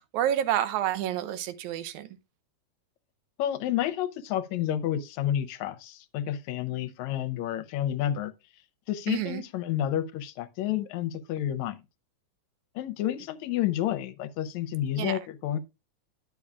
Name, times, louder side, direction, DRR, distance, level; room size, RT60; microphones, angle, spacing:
voice 1, 0.1-2.2 9.1-9.4 15.0-15.2, right 11 dB, 80° right, 2.1 m, -29 dB
voice 2, 3.4-8.3 8.9-11.8 12.8-15.6, left 11 dB, 80° left, 1.8 m, -30 dB
10.5 x 6.9 x 2.4 m
omnidirectional pair, 3.5 m